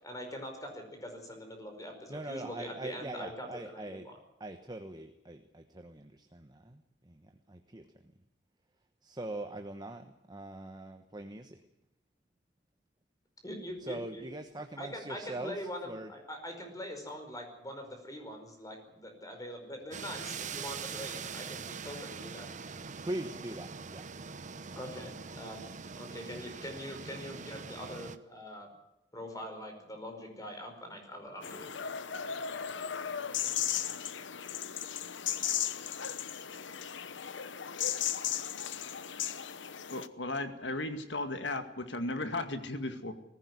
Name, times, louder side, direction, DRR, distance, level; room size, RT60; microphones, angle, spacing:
voice 1, 0.0-4.1 13.4-14.2 14.8-22.5 24.7-25.6 26.0-28.7 29.1-31.7, equal, 20° left, 4 dB, 5.0 m, -43 dB
voice 2, 2.1-4.1 4.4-8.1 9.0-11.6 13.8-16.1 23.0-24.1, right 1 dB, 25° right, 7 dB, 1.2 m, -42 dB
sound 1, 19.9-28.2, right 5 dB, 40° right, 1.0 m, -43 dB
sound 2, 31.4-40.1, left 9 dB, 85° left, 1.0 m, -36 dB
voice 3, 39.9-43.1, left 2 dB, 70° left, 8 dB, 2.1 m, -35 dB
19.5 x 15.5 x 9.6 m, 0.91 s
head